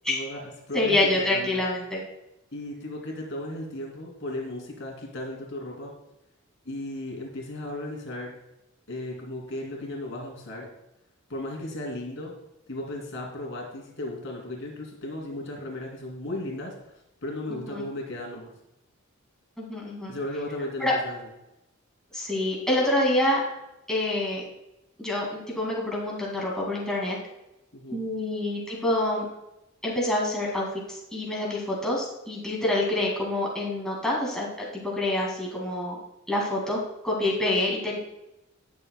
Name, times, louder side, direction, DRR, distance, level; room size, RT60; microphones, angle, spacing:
voice 1, 0.1-0.4 0.7-1.6 2.5-5.9 6.6-8.3 8.9-10.7 11.3-12.3 12.7-16.9 17.2-18.5 20.1-21.2 27.7-28.0, left 1 dB, 60° left, -1 dB, 2.7 m, -35 dB
voice 2, 0.7-2.0 17.5-17.9 19.6-20.1 20.8-20.9 22.1-23.4 23.9-24.4 25.0-27.2 27.9-29.3 29.8-34.5 34.7-36.0 36.3-36.8 37.0-38.0, left 1 dB, 5° left, -4 dB, 2.1 m, -27 dB
18.0 x 6.9 x 2.2 m, 0.91 s
head